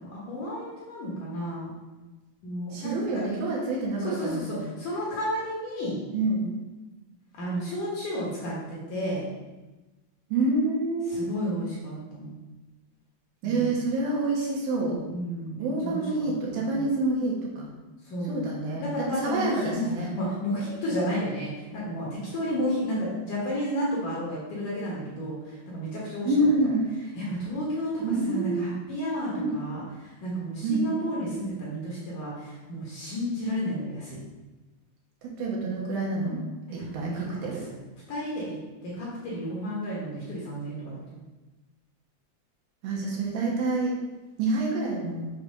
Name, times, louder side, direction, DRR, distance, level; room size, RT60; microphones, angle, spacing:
voice 1, 0.0-1.7 2.4-3.2 4.0-6.0 7.4-9.3 11.1-12.4 13.4-13.7 15.1-16.3 16.6-16.8 18.1-18.5 18.8-19.9 20.1-26.3 27.2-29.8 30.2-34.2 36.8-37.5 38.1-38.5 38.8-41.2, equal, 60° left, -6 dB, 2.4 m, -32 dB
voice 2, 2.7-4.6 6.1-6.5 10.3-11.3 13.4-15.0 15.6-17.7 18.2-20.1 26.2-26.9 28.0-28.7 29.3-29.5 30.6-30.8 35.2-36.4 36.7-37.7 42.8-44.0 44.4-45.3, right 2 dB, 75° right, -3 dB, 2.7 m, -27 dB
7.1 x 3.2 x 5.2 m, 1.1 s
omnidirectional pair, 4.8 m